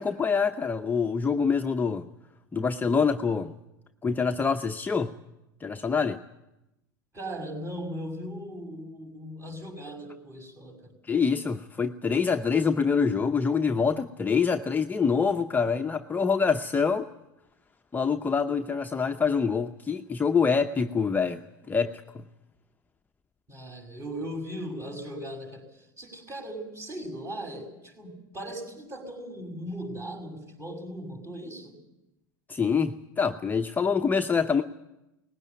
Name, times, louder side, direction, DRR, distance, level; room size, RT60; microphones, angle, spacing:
voice 1, 0.0-2.1 2.5-3.6 4.0-5.1 5.6-6.2 11.1-17.1 17.9-22.2 32.5-34.6, left 5 dB, 15° left, 5 dB, 0.8 m, -25 dB
voice 2, 7.1-11.0 23.5-31.8, equal, 25° right, 2 dB, 6.0 m, -38 dB
19.5 x 16.5 x 9.4 m, 0.93 s
hypercardioid pair, 90°, 11 cm